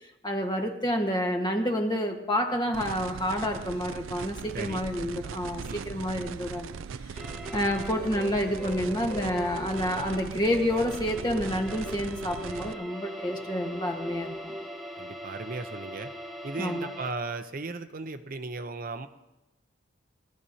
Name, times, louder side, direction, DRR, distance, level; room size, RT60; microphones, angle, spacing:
voice 1, 0.2-6.8 7.1-7.2 7.5-14.5 16.6-16.9, equal, 20° left, 3 dB, 1.4 m, -29 dB
sound 1, 2.7-12.7, right 6 dB, 90° right, 0.4 m, -39 dB
voice 2, 5.6-6.0 15.0-16.1 16.4-19.1, right 3 dB, 50° right, 8 dB, 0.7 m, -36 dB
sound 2, 7.2-17.1, equal, ahead, 1.1 m, -40 dB
22.0 x 13.5 x 2.8 m, 1.0 s
head